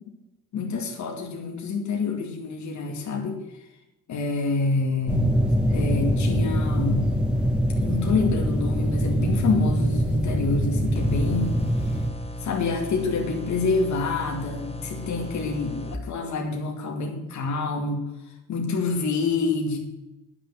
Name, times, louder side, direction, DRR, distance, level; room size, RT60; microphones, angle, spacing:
voice 1, 0.5-3.4 4.1-5.2 5.7-7.1 7.8-11.6 12.4-18.0 18.5-19.8, left 4 dB, 65° left, 1 dB, 2.3 m, -27 dB
sound 1, 5.1-12.1, equal, 5° right, 1.9 m, -24 dB
sound 2, 10.9-15.9, left 1 dB, 20° left, 1.2 m, -36 dB
10.5 x 7.0 x 8.0 m, 0.96 s
cardioid pair, 90°, 30 cm